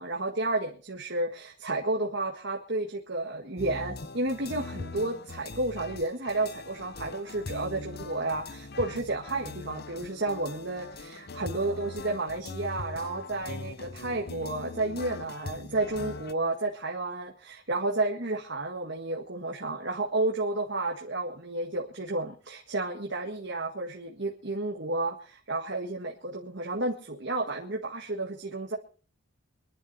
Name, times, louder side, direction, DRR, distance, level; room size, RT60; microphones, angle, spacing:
voice 1, 0.0-28.8, right 2 dB, 55° right, 0 dB, 1.7 m, -31 dB
sound 1, 3.6-16.3, left 3 dB, 45° left, 0.8 m, -41 dB
24.0 x 11.0 x 4.2 m, 0.39 s
head